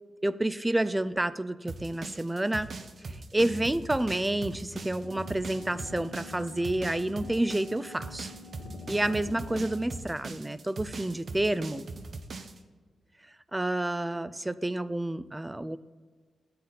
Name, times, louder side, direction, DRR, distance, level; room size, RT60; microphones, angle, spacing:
voice 1, 0.2-2.7 3.0-8.3 8.9-11.9 13.5-15.8, right 1 dB, 15° right, 15 dB, 0.3 m, -29 dB
sound 1, 1.7-12.6, right 3 dB, 60° right, 0.6 m, -40 dB
sound 2, 3.4-10.1, left 2 dB, 65° left, 0.7 m, -46 dB
Wind instrument woodwind instrument, 4.8-10.0, left 1 dB, 40° left, 1.2 m, -51 dB
8.4 x 4.0 x 3.9 m, 1.5 s
cardioid pair, 60°, 0 cm